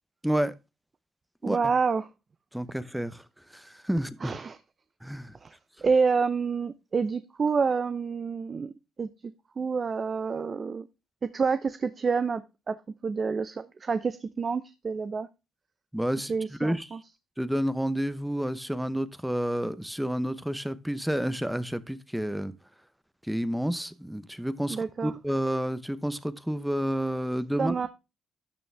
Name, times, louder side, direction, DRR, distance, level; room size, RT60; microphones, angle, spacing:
voice 1, 0.2-0.5 1.4-1.7 2.5-3.2 3.5-4.4 5.0-5.3 15.9-16.3 16.6-16.9 17.4-22.5 23.3-27.9, equal, 5° right, 0.9 m, -30 dB
voice 2, 1.4-2.1 4.2-4.6 5.4-5.5 5.8-8.7 9.0-9.1 9.6-10.9 11.3-12.4 12.7-12.8 13.0-15.3 16.3-17.0 24.7-25.1 27.6-27.9, right 5 dB, 40° right, 0.8 m, -28 dB
12.5 x 6.8 x 3.4 m
cardioid pair, 90°, 0 cm